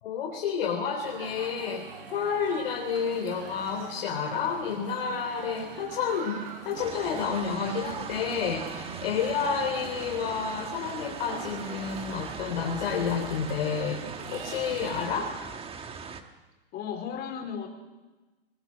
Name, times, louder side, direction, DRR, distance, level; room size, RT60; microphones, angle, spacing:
voice 1, 0.0-6.4 6.7-14.0 14.3-15.3, left 6 dB, 65° left, 0 dB, 3.9 m, -30 dB
sound 1, 1.0-15.1, right 5 dB, 60° right, 7.0 m, -43 dB
sound 2, 6.8-16.2, right 5 dB, 20° right, 1.7 m, -41 dB
voice 2, 14.8-15.2 16.7-17.7, left 7 dB, 35° left, 5 dB, 4.3 m, -36 dB
23.5 x 21.0 x 6.4 m, 1.2 s
hypercardioid pair, 115°, 30 cm